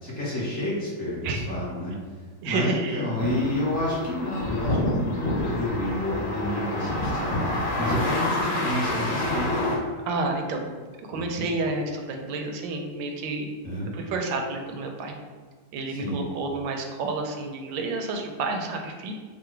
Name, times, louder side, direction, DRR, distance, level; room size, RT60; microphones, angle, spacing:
voice 1, 0.0-2.0 2.4-9.8 11.1-11.2 13.6-13.9 15.9-16.2, left 1 dB, 40° left, -8 dB, 1.3 m, -30 dB
voice 2, 2.4-3.0 10.1-10.6 11.1-13.5 13.9-15.1 15.7-19.1, right 3 dB, 80° right, 3 dB, 1.2 m, -30 dB
sound 1, 3.2-9.8, left 1 dB, 80° left, 1.6 m, -28 dB
3.8 x 2.1 x 4.4 m, 1.5 s
omnidirectional pair, 2.1 m